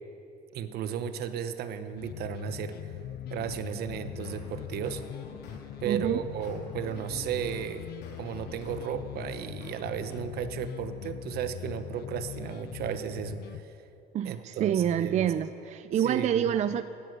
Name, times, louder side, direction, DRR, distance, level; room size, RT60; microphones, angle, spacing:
voice 1, 0.5-2.9 3.3-5.0 5.8-7.8 8.2-13.8 14.2-15.3 16.0-16.5, right 8 dB, 70° right, 11 dB, 0.9 m, -34 dB
sound 1, 2.0-13.6, left 12 dB, 65° left, 0.5 m, -41 dB
sound 2, 4.1-5.6 6.0-8.8 9.2-10.2, left 2 dB, 85° left, 2.8 m, -49 dB
voice 2, 5.9-6.2 14.1-16.8, right 9 dB, 45° right, 12 dB, 0.4 m, -27 dB
16.5 x 9.5 x 6.6 m, 2.8 s
cardioid pair, 110°, 17 cm